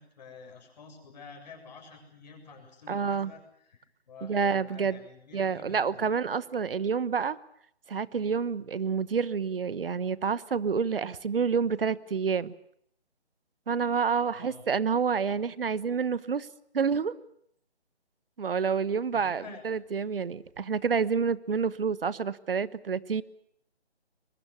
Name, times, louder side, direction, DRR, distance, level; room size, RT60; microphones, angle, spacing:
voice 1, 0.0-6.0 14.3-14.6 19.1-19.6, left 4 dB, 40° left, 3 dB, 7.5 m, -49 dB
voice 2, 2.9-3.3 4.2-5.0 5.3-7.4 7.9-12.5 13.7-16.5 16.7-17.2 18.4-23.2, right 6 dB, 55° right, 18 dB, 1.2 m, -28 dB
23.0 x 23.0 x 8.4 m, 0.67 s
figure-of-eight pair, 155°, 33 cm